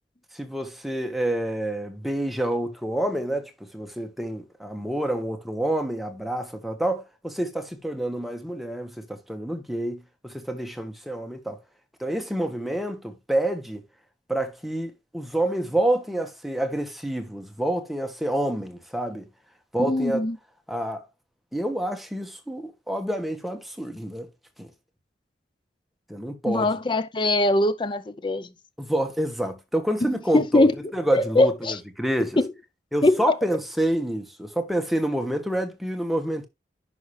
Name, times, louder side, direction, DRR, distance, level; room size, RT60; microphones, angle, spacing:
voice 1, 0.3-11.6 12.0-13.8 14.3-19.3 19.7-20.2 20.7-21.0 21.5-24.3 24.6-24.7 26.1-26.7 28.8-32.4 32.9-36.5, right 1 dB, ahead, 1.2 m, -28 dB
voice 2, 19.9-20.4 26.5-28.5 30.3-30.7 31.1-31.8 32.4-32.5 33.0-33.2, left 2 dB, 25° left, 0.5 m, -21 dB
10.5 x 5.7 x 3.2 m
head